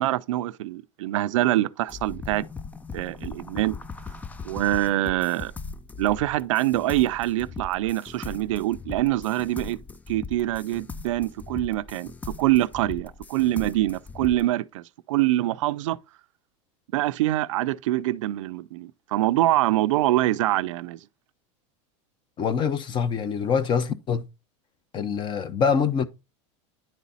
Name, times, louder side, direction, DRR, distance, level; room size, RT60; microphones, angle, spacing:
voice 1, 0.0-2.4 2.9-3.8 4.4-5.5 6.0-9.8 10.1-12.1 12.4-16.0 16.9-21.0, right 15 dB, 85° right, 0.5 m, -24 dB
sound 1, 1.9-14.5, left 4 dB, 10° left, 0.3 m, -39 dB
voice 2, 22.4-24.2 24.9-26.0, left 6 dB, 30° left, 0.9 m, -24 dB
10.5 x 4.1 x 4.1 m
supercardioid pair, 135°, 16 cm